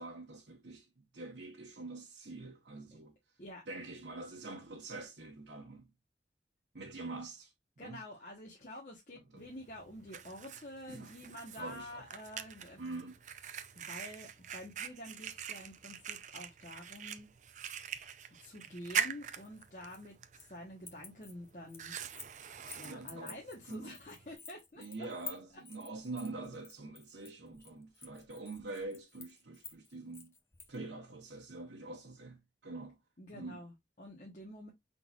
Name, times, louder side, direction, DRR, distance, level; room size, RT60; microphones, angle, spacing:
voice 1, 0.0-3.1 3.7-5.9 6.7-7.5 7.8-8.0 9.3-9.4 10.9-11.1 11.6-12.1 12.8-13.2 22.8-23.4 23.7-23.9 24.8-30.3 30.7-33.0 33.3-33.6, right 3 dB, 80° right, 1.1 m, -45 dB
voice 2, 7.8-12.8 13.7-17.3 18.4-21.9 22.8-25.1 33.2-34.7, left 1 dB, 40° left, 1.2 m, -48 dB
Fire, 9.4-24.4, right 8 dB, 40° right, 0.5 m, -44 dB
sound 1, 19.4-20.6 20.8-22.4 22.7-30.8, left 4 dB, 15° left, 0.7 m, -51 dB
5.5 x 3.9 x 2.4 m
head